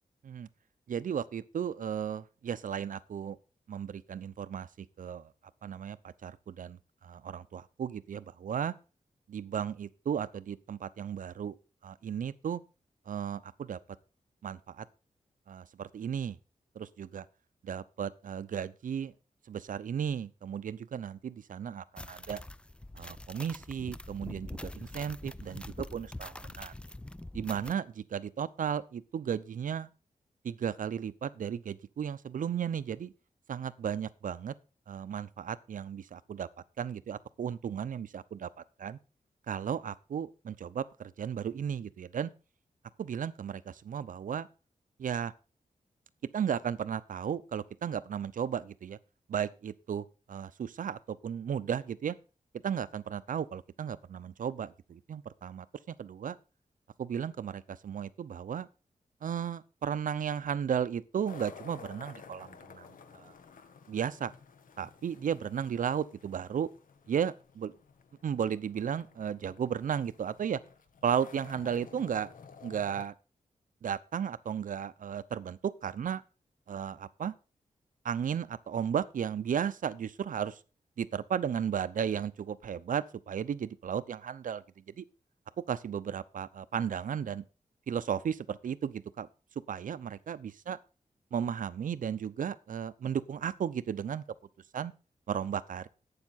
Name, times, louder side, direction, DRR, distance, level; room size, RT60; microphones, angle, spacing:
voice 1, 0.9-3.4 3.7-5.3 5.6-8.7 9.3-11.6 11.8-12.6 13.1-13.8 14.4-14.9 15.5-16.4 16.7-17.3 17.6-19.1 19.5-22.4 22.9-26.7 27.3-29.9 30.4-33.1 33.5-34.5 34.9-36.5 36.8-38.5 38.8-39.0 39.5-42.3 43.0-44.5 45.0-45.3 46.3-49.0 49.3-52.1 52.6-56.4 57.0-58.7 59.2-63.3 63.9-64.3 64.8-66.7 67.1-67.7 68.2-70.6 71.0-72.3 72.6-73.1 73.8-76.2 76.7-77.3 78.0-80.6 81.0-84.6 85.0-85.1 85.7-87.4 87.9-89.3 89.7-90.8 91.3-94.2 94.7-94.9 95.3-95.9, right 8 dB, 80° right, 0.7 m, -34 dB
sound 1, 22.0-27.7, left 1 dB, 10° left, 0.4 m, -44 dB
sound 2, 61.3-73.1, left 6 dB, 85° left, 1.2 m, -53 dB
12.0 x 8.7 x 4.2 m
wide cardioid pair, 115°, 14 cm